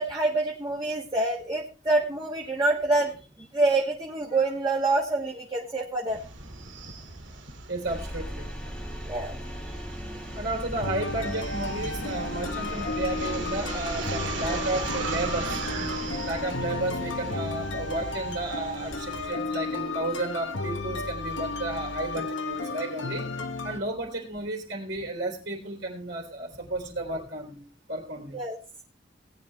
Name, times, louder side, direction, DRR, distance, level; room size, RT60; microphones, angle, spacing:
voice 1, 0.0-6.2 9.0-9.3 28.3-28.6, right 2 dB, 20° right, -2 dB, 1.4 m, -26 dB
sound 1, 6.1-19.3, right 3 dB, 90° right, 2.4 m, -38 dB
voice 2, 7.7-8.5 10.3-15.6 16.2-23.3 23.6-27.6 27.9-28.4, right 2 dB, 70° right, -1 dB, 3.2 m, -33 dB
sound 2, 7.9-21.8, equal, 5° left, 1.4 m, -40 dB
sound 3, 10.8-23.8, left 3 dB, 85° left, 1.2 m, -33 dB
18.0 x 9.5 x 3.2 m, 0.36 s
head